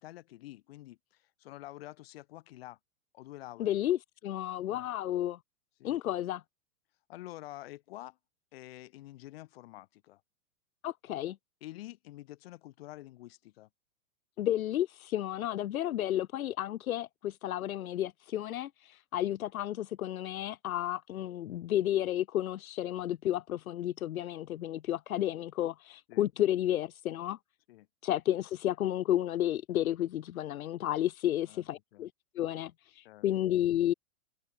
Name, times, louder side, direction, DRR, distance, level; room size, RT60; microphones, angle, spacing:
voice 1, 0.0-2.8 3.1-3.7 4.7-4.9 5.8-6.0 7.1-8.2 8.5-10.2 11.6-13.7 26.1-26.2 27.7-27.9 31.4-31.6 31.9-32.1 33.0-33.3, left 16 dB, 45° left, 7.7 m, -48 dB
voice 2, 3.6-5.4 5.8-6.4 10.8-11.4 14.4-27.4 28.0-32.1 32.3-33.9, left 12 dB, 75° left, 1.2 m, -32 dB
supercardioid pair, 175°, 42 cm